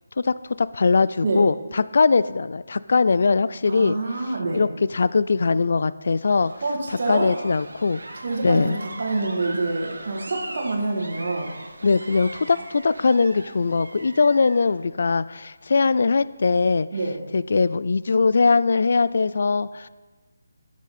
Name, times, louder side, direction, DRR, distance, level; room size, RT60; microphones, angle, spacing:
voice 1, 0.2-4.0 4.5-4.7 4.9-6.5 7.1-8.0 8.4-8.8 11.8-16.9 17.3-19.9, left 4 dB, 55° left, 16 dB, 0.3 m, -21 dB
voice 2, 3.7-4.6 6.6-7.3 8.2-11.5 16.9-17.2, right 2 dB, 50° right, 0 dB, 1.8 m, -26 dB
sound 1, 6.2-14.8, right 2 dB, 90° right, 1.3 m, -40 dB
11.5 x 6.3 x 4.2 m, 1.3 s
figure-of-eight pair, 170°, 0 cm